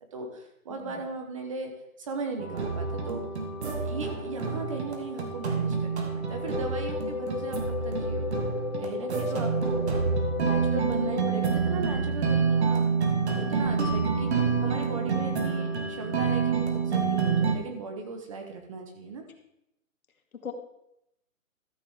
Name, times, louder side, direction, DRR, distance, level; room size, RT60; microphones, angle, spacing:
voice 1, 0.1-3.2 3.8-8.4 8.8-9.8 10.4-12.9 13.3-14.3 14.6-19.2, right 4 dB, 25° right, 4 dB, 0.9 m, -37 dB
voice 2, 0.7-1.0 9.3-9.7 20.3-20.5, left 7 dB, 80° left, 4 dB, 2.1 m, -43 dB
sound 1, 2.4-17.6, right 5 dB, 50° right, 1.9 m, -28 dB
sound 2, 6.3-11.3, left 5 dB, 25° left, 2.0 m, -35 dB
13.5 x 8.2 x 3.6 m, 0.83 s
hypercardioid pair, 165°, 42 cm